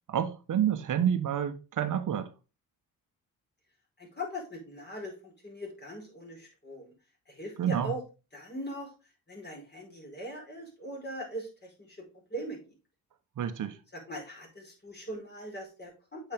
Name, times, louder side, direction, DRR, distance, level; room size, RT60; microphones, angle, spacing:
voice 1, 0.1-2.3 7.6-7.9 13.4-13.8, right 9 dB, 60° right, 1.1 m, -29 dB
voice 2, 4.0-6.9 7.3-8.0 8.3-8.9 9.3-12.0 12.3-12.6 13.9-16.3, equal, 30° left, 4.8 m, -40 dB
7.9 x 5.6 x 3.7 m
cardioid pair, 80°, 35 cm